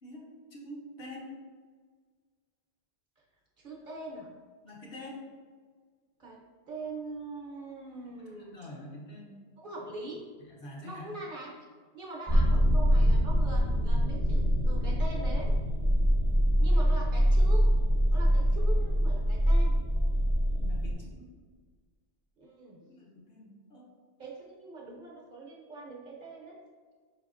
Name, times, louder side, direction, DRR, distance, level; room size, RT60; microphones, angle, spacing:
voice 1, 0.0-1.3 4.6-5.3 8.3-9.4 10.4-11.2 20.6-21.3 22.8-23.9, left 1 dB, 60° left, -2 dB, 1.0 m, -46 dB
voice 2, 3.6-4.3 6.2-6.4 6.7-8.6 9.6-10.2 10.8-11.7 11.9-15.5 16.6-17.7 18.1-19.8 22.4-22.8 24.2-26.6, right 2 dB, 50° right, -2 dB, 0.8 m, -42 dB
sound 1, 12.3-20.9, equal, 15° left, 0.6 m, -24 dB
5.3 x 3.4 x 2.5 m, 1.5 s
omnidirectional pair, 1.2 m